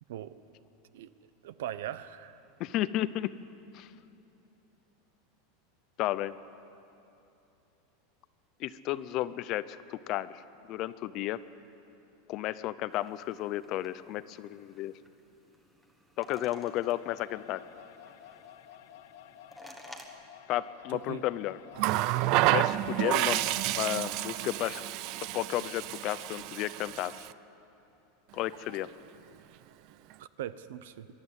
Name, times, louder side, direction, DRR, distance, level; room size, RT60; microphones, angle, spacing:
voice 1, 1.4-2.4 20.9-21.2 30.2-31.1, right 11 dB, 75° right, 14 dB, 0.8 m, -40 dB
voice 2, 2.6-3.3 3.7-3.9 6.0-6.3 8.6-10.4 10.7-11.4 12.3-14.9 16.2-17.6 20.5-21.6 22.5-24.8 25.3-27.2 28.3-28.9, left 14 dB, 35° left, 16 dB, 0.5 m, -33 dB
sound 1, 12.9-20.0, equal, 5° right, 1.3 m, -55 dB
sound 2, 16.4-24.1, left 11 dB, 60° left, 0.8 m, -52 dB
Water tap faucet, 21.8-27.3 28.5-28.7, right 15 dB, 40° right, 0.4 m, -30 dB
23.0 x 12.5 x 9.6 m, 2.8 s
supercardioid pair, 170°, 0 cm